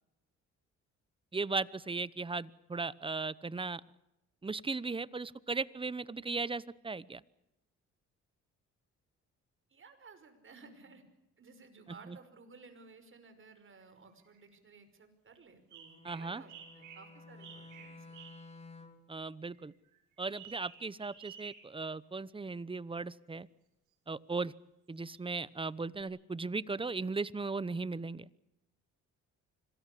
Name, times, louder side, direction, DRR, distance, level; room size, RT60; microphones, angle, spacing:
voice 1, 1.3-3.8 4.4-7.2 11.9-12.2 16.0-16.4 19.1-19.7 20.2-23.5 24.1-24.5 24.9-28.3, right 3 dB, 15° right, 19 dB, 0.9 m, -37 dB
voice 2, 9.7-11.0 11.4-18.2, right 4 dB, 40° right, 9 dB, 5.5 m, -56 dB
sound 1, 13.8-13.9 14.2-14.4 15.7-18.5 19.5-21.8 24.3-24.4 25.0-25.4 26.0-26.1, right 8 dB, 85° right, 6.8 m, -54 dB
Bowed string instrument, 15.7-19.1, left 3 dB, 20° left, 3.4 m, -53 dB
26.0 x 20.5 x 8.5 m, 0.90 s
cardioid pair, 90°, 30 cm